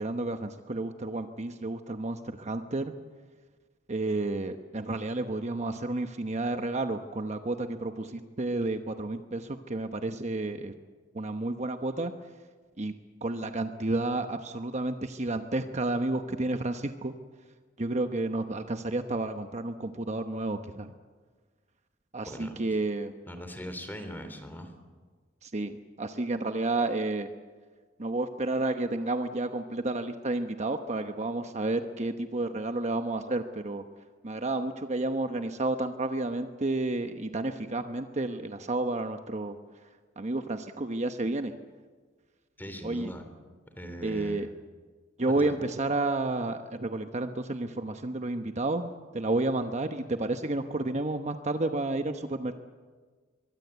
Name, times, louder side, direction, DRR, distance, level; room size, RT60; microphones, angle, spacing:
voice 1, 0.0-2.9 3.9-10.7 11.1-12.1 12.8-12.9 13.2-17.1 17.8-20.9 22.1-23.1 25.4-27.3 28.0-33.8 34.2-39.6 40.2-41.5 42.8-43.1 44.0-44.5 45.2-48.9 49.1-52.6, right 2 dB, 35° right, 7 dB, 1.0 m, -31 dB
voice 2, 22.2-22.6 23.3-24.7 42.6-43.3 43.7-44.5 45.3-45.5, equal, 10° left, 8 dB, 3.3 m, -40 dB
24.5 x 23.0 x 8.1 m, 1.5 s
head